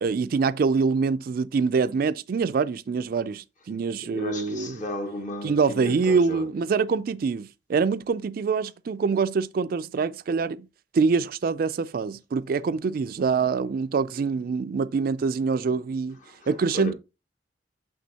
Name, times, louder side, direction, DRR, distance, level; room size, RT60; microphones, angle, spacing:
voice 1, 0.0-4.8 5.4-10.7 10.9-16.2 16.5-16.9, right 5 dB, 55° right, 0.4 m, -25 dB
voice 2, 4.0-6.5 16.3-16.9, left 1 dB, 45° left, 1.1 m, -34 dB
6.1 x 5.8 x 2.8 m
head